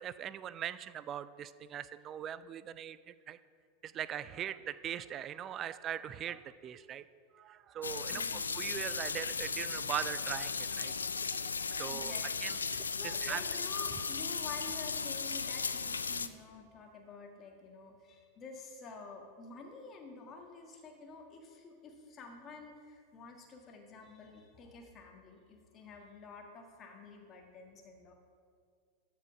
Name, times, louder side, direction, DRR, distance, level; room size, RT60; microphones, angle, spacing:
voice 1, 0.0-3.4 3.8-7.0 7.3-11.3 11.7-12.1 12.4-13.4, right 10 dB, 30° right, 16 dB, 0.3 m, -41 dB
sound 1, 7.8-16.3, left 5 dB, 75° left, 0.4 m, -36 dB
voice 2, 8.1-8.4 11.8-12.3 13.0-28.1, left 4 dB, 25° left, 2 dB, 1.5 m, -49 dB
13.0 x 5.0 x 5.8 m, 2.1 s
figure-of-eight pair, 90°, 0 cm